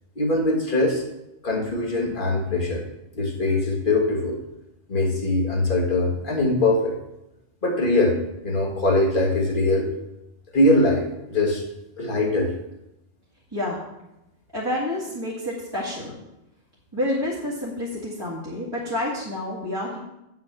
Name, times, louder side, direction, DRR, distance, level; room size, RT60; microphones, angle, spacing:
voice 1, 0.2-1.0 1.4-2.8 3.2-4.4 4.9-7.0 7.6-9.9 10.5-11.6 12.0-12.5, left 2 dB, 40° left, 0 dB, 1.8 m, -22 dB
voice 2, 13.5-13.8 14.5-16.1 16.9-20.0, left 1 dB, 20° right, -6 dB, 2.0 m, -28 dB
8.5 x 5.9 x 7.3 m, 0.90 s
omnidirectional pair, 1.3 m